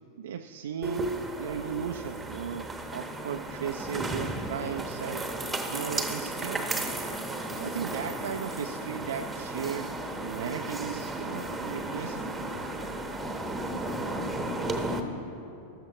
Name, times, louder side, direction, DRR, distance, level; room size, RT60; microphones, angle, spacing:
voice 1, 0.2-5.3 5.7-6.9 7.5-12.4, right 7 dB, 60° right, 6 dB, 0.3 m, -36 dB
sound 1, 0.8-15.0, right 2 dB, 10° right, 0.9 m, -34 dB
14.5 x 12.5 x 2.8 m, 2.8 s
figure-of-eight pair, 90°, 0 cm